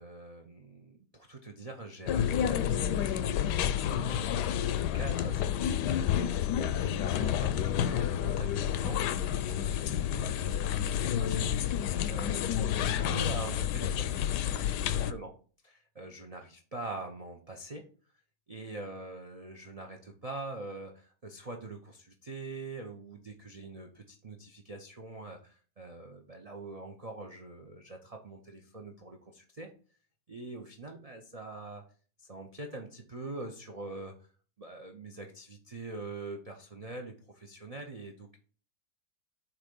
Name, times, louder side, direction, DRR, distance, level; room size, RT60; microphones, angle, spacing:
voice 1, 0.0-4.7 4.9-6.3 6.6-11.8 12.1-14.1 14.5-15.3 15.6-17.8 18.5-29.7 30.3-31.8 32.2-34.1 34.6-38.4, right 2 dB, 50° right, 4 dB, 0.4 m, -44 dB
sound 1, 2.1-15.1, left 9 dB, 75° left, 1.1 m, -30 dB
8.2 x 3.2 x 5.2 m, 0.40 s
omnidirectional pair, 1.9 m